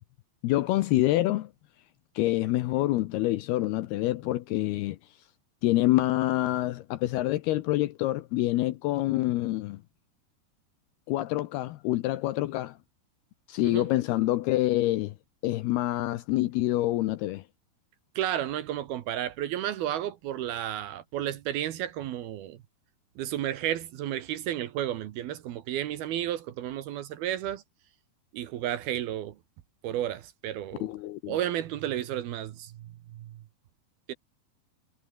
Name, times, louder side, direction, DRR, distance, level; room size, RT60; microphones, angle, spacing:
voice 1, 0.4-1.5 2.2-5.0 5.6-9.8 11.1-12.8 13.5-15.1 15.4-17.4 30.8-31.4, left 16 dB, 80° left, 2.5 m, -26 dB
voice 2, 18.2-22.6 23.2-27.6 28.3-29.4 29.8-30.9 31.3-33.4 34.1-34.2, right 11 dB, 65° right, 2.8 m, -32 dB
omnidirectional pair, 5.2 m